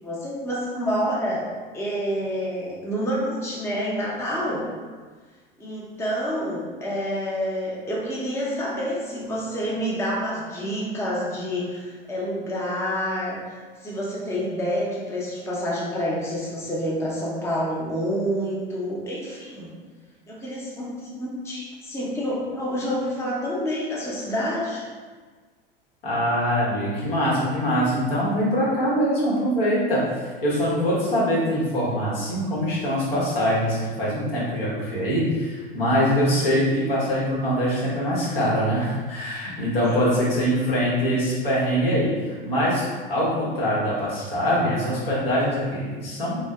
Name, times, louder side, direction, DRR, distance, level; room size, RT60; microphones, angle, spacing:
voice 1, 0.0-1.4 1.7-4.7 5.6-13.4 13.8-19.7 20.3-24.9 39.8-40.0, equal, 10° left, -6 dB, 0.7 m, -28 dB
voice 2, 26.0-42.8 43.1-46.4, equal, 75° left, -7 dB, 1.2 m, -23 dB
2.6 x 2.3 x 3.3 m, 1.5 s
figure-of-eight pair, 80°, 29 cm